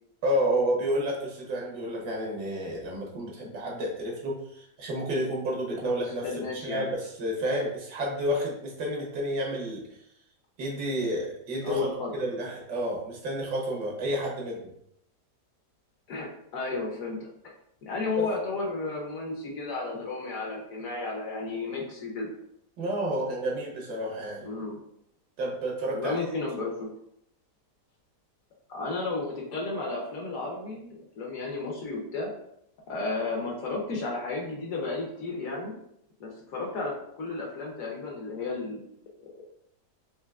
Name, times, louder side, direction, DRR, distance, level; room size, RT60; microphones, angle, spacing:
voice 1, 0.2-9.8 10.6-11.9 12.1-14.7 18.2-18.3 22.8-24.4 25.4-26.2, equal, 75° right, -2 dB, 1.6 m, -30 dB
voice 2, 6.2-6.9 11.6-12.1 16.1-17.3 17.9-22.3 24.4-24.8 25.9-26.9 28.7-32.3 32.9-35.7 36.2-38.9 39.3-39.4, left 3 dB, 60° left, -1 dB, 1.1 m, -33 dB
4.4 x 2.7 x 2.4 m, 0.74 s
omnidirectional pair, 1.8 m